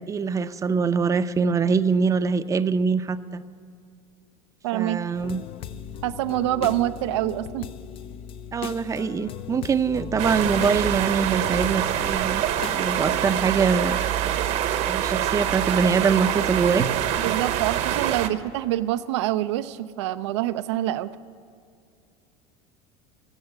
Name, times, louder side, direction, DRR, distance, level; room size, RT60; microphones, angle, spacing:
voice 1, 0.1-3.4 4.7-5.4 8.5-12.4 12.7-14.0 14.9-16.8 18.3-18.4, right 5 dB, 20° right, 12 dB, 0.6 m, -23 dB
voice 2, 4.6-5.0 6.0-7.7 17.2-21.1, right 14 dB, 85° right, 13 dB, 0.6 m, -26 dB
sound 1, 5.1-13.6, left 8 dB, 40° left, 0.5 m, -38 dB
sound 2, 10.2-18.3, right 10 dB, 55° right, 1.0 m, -25 dB
15.5 x 6.5 x 9.9 m, 2.2 s
supercardioid pair, 110°, 14 cm